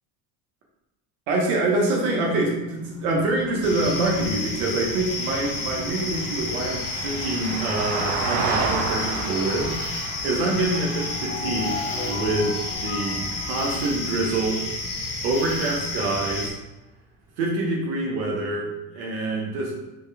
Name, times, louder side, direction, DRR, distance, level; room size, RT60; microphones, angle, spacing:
voice 1, 1.3-9.8 10.2-11.8 12.1-14.6 15.2-16.5 17.4-19.8, right 2 dB, 80° right, -1 dB, 1.2 m, -25 dB
Vehicle, 3.1-13.5 15.8-15.9, right 4 dB, 50° right, 0.8 m, -33 dB
sound 1, 3.6-16.5, left 2 dB, 45° left, 1.3 m, -31 dB
sound 2, 10.7-14.6, left 5 dB, 20° left, 0.9 m, -36 dB
4.2 x 3.3 x 3.3 m, 1.0 s
supercardioid pair, 120°, 43 cm